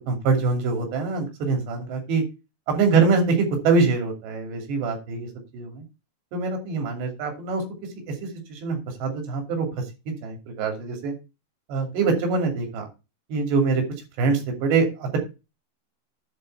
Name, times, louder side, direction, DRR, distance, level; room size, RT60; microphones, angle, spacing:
voice 1, 0.0-2.2 2.7-5.3 5.5-5.8 6.3-7.6 8.2-9.7 10.1-11.1 11.7-12.8 13.3-13.8 14.2-15.2, right 4 dB, 90° right, 4 dB, 4.9 m, -24 dB
10.5 x 4.3 x 7.8 m, 0.28 s
omnidirectional pair, 4.8 m